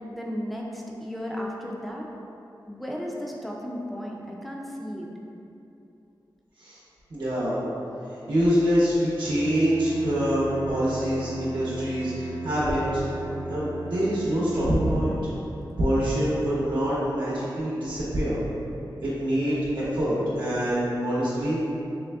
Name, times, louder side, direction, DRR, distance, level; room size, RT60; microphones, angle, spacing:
voice 1, 0.1-2.1 2.7-5.1, equal, ahead, -2 dB, 0.4 m, -34 dB
voice 2, 7.1-7.6 8.1-13.0 13.5-15.1 15.8-18.4 19.0-21.6, equal, 80° right, -9 dB, 0.8 m, -25 dB
Bowed string instrument, 9.2-15.1, right 1 dB, 55° left, 0.9 m, -38 dB
3.5 x 3.2 x 2.3 m, 2.8 s
wide cardioid pair, 115°, 8 cm